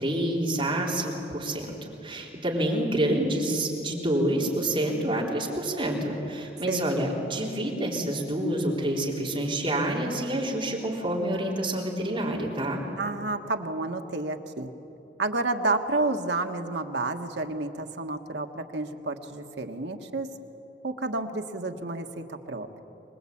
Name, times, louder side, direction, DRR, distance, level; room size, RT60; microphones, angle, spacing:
voice 1, 0.0-1.7 2.0-12.8, right 1 dB, 30° right, -3 dB, 4.0 m, -28 dB
voice 2, 13.0-14.7 15.2-20.3 20.8-22.8, right 2 dB, 75° right, 4 dB, 1.5 m, -30 dB
25.0 x 21.0 x 8.7 m, 3.0 s
head